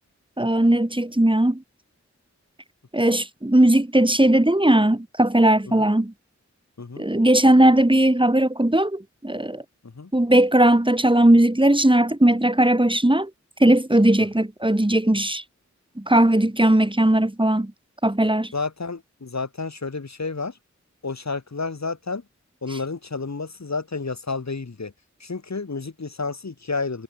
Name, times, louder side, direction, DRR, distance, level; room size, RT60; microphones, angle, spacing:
voice 1, 0.4-1.6 2.9-6.1 7.0-9.6 10.1-13.3 13.6-15.4 16.0-17.7 18.0-18.5, right 1 dB, 15° right, 4.8 m, -18 dB
voice 2, 18.5-20.5 21.0-22.2 22.6-24.9 25.2-27.0, left 4 dB, 65° left, 5.6 m, -30 dB
wide cardioid pair, 80°, 29 cm